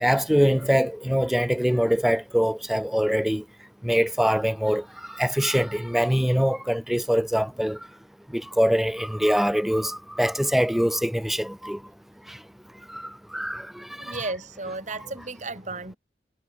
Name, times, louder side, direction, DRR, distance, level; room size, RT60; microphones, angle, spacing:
voice 1, 0.0-3.4 3.8-4.8 5.2-7.8 8.3-11.8 12.9-13.0 13.3-13.6 14.1-14.2, equal, ahead, 0.4 m, -23 dB
voice 2, 14.0-16.0, right 3 dB, 45° right, 3.0 m, -34 dB
head